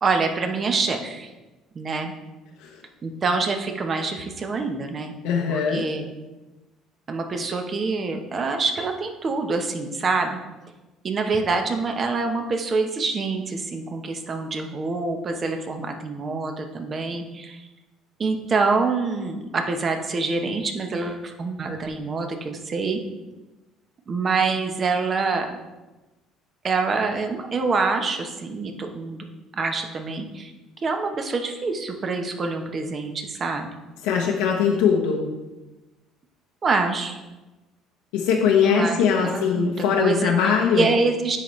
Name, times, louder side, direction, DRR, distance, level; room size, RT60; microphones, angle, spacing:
voice 1, 0.0-1.3 1.7-2.1 3.0-5.1 5.5-6.1 7.1-10.4 11.0-17.6 18.2-23.0 24.1-25.5 26.6-29.3 29.5-30.5 30.8-33.7 36.6-37.2 38.6-40.3 40.7-41.4, right 4 dB, 40° right, 5 dB, 0.9 m, -26 dB
voice 2, 5.2-5.8 34.0-35.2 38.1-40.9, left 6 dB, 90° left, -1 dB, 0.8 m, -21 dB
9.5 x 4.0 x 3.2 m, 1.1 s
supercardioid pair, 95°, 0 cm